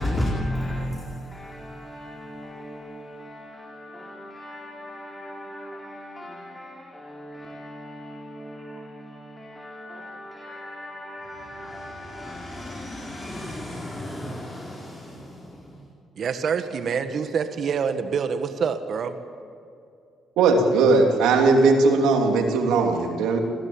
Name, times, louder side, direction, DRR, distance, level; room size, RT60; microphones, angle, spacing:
voice 1, 0.0-15.9, left 1 dB, 15° left, -1 dB, 4.1 m, -35 dB
voice 2, 16.2-19.2, right 6 dB, 55° right, 9 dB, 1.8 m, -26 dB
voice 3, 20.4-23.4, right 3 dB, 90° right, 3 dB, 3.1 m, -19 dB
25.5 x 16.5 x 8.9 m, 2.5 s
cardioid pair, 90°, 0 cm